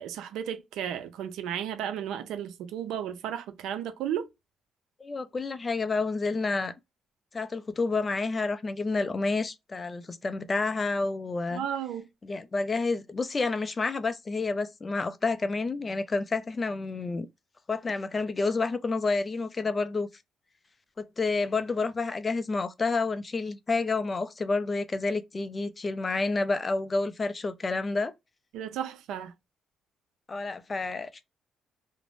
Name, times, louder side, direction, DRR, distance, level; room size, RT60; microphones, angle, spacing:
voice 1, 0.0-4.3 11.5-12.1 28.5-29.3, right 9 dB, 85° right, 0.4 m, -34 dB
voice 2, 5.0-6.7 7.3-11.6 12.2-17.3 17.7-20.1 21.0-28.1 30.3-31.3, left 3 dB, 30° left, 0.4 m, -29 dB
2.5 x 2.0 x 3.1 m
cardioid pair, 90°, 0 cm